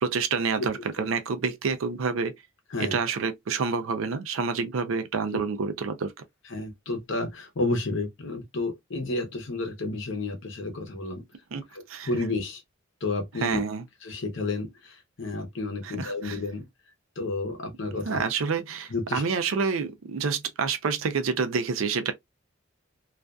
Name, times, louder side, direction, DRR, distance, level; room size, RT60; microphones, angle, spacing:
voice 1, 0.0-2.3 2.8-6.1 11.5-12.1 13.4-13.8 15.8-16.4 18.0-22.1, right 5 dB, 90° right, 0.5 m, -28 dB
voice 2, 6.5-11.2 11.7-12.6 13.0-13.6 14.0-16.7 17.2-18.2 18.9-19.2, left 2 dB, 65° left, 0.8 m, -31 dB
2.4 x 2.2 x 2.4 m
head